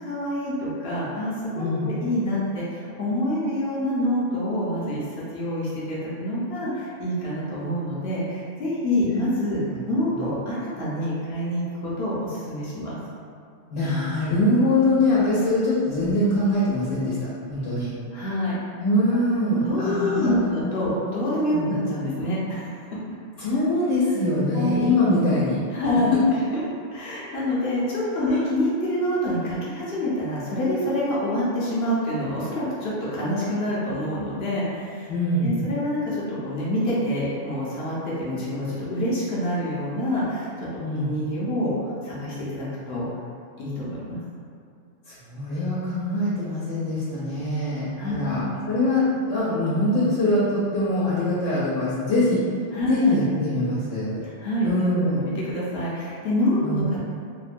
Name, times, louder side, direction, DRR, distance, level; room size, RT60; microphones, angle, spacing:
voice 1, 0.0-5.0 5.3-13.0 18.1-18.6 19.6-22.7 24.5-24.9 25.7-26.1 26.5-26.6 26.9-35.1 35.4-40.7 41.0-41.7 42.0-43.0 43.6-44.2 48.0-48.6 52.7-53.1 54.2-57.0, left 1 dB, 60° left, -8 dB, 0.8 m, -26 dB
voice 2, 1.6-1.9 10.1-10.2 13.7-17.1 17.5-17.9 18.8-21.0 21.5-21.7 23.4-25.6 28.2-28.4 35.1-35.5 40.8-41.1 45.3-52.4 52.8-54.2 54.6-55.2 56.6-57.0, left 1 dB, 90° left, -9 dB, 1.0 m, -23 dB
2.9 x 2.1 x 2.5 m, 2.4 s
omnidirectional pair, 1.2 m